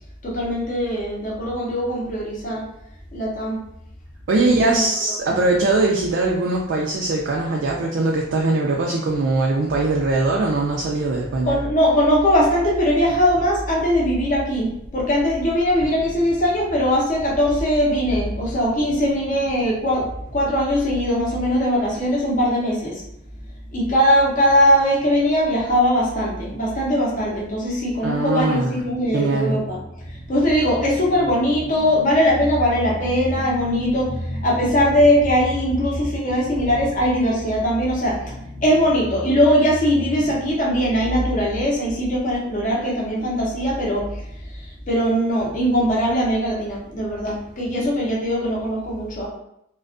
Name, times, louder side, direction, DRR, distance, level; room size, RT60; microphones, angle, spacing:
voice 1, 0.2-2.6 3.1-3.6 4.6-4.9 5.3-5.4 11.4-23.0 23.7-49.3, equal, 40° left, -3 dB, 0.7 m, -20 dB
voice 2, 4.3-11.6 28.0-28.8 29.1-29.6, right 2 dB, 60° right, -2 dB, 0.3 m, -21 dB
2.4 x 2.3 x 2.4 m, 0.76 s
head